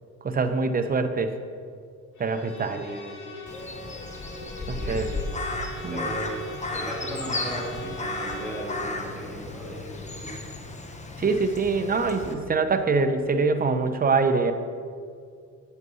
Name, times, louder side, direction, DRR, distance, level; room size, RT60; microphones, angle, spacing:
voice 1, 0.2-1.3 2.2-2.9 4.7-5.1 5.8-6.1 11.2-14.5, right 4 dB, 30° right, 8 dB, 0.8 m, -24 dB
Bowed string instrument, 2.2-8.8, right 1 dB, 70° left, 1.8 m, -41 dB
voice 2, 2.7-3.3 4.7-5.2 5.9-10.4, equal, ahead, -4 dB, 2.2 m, -37 dB
Crow, 3.5-12.3, left 2 dB, 25° left, 1.1 m, -34 dB
8.3 x 7.6 x 5.5 m, 2.3 s
cardioid pair, 90°, 30 cm